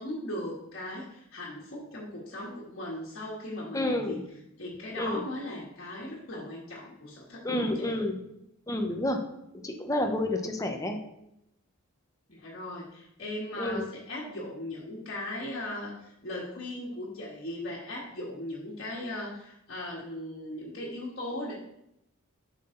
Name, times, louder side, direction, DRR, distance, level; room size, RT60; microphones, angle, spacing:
voice 1, 0.0-4.2 4.6-8.0 12.3-21.5, left 1 dB, 55° left, -6 dB, 1.8 m, -38 dB
voice 2, 3.7-4.2 5.0-5.2 7.4-8.2 8.7-9.2 9.6-11.0 13.6-13.9, left 1 dB, 15° left, 3 dB, 1.0 m, -29 dB
8.2 x 5.8 x 4.0 m, 0.80 s
head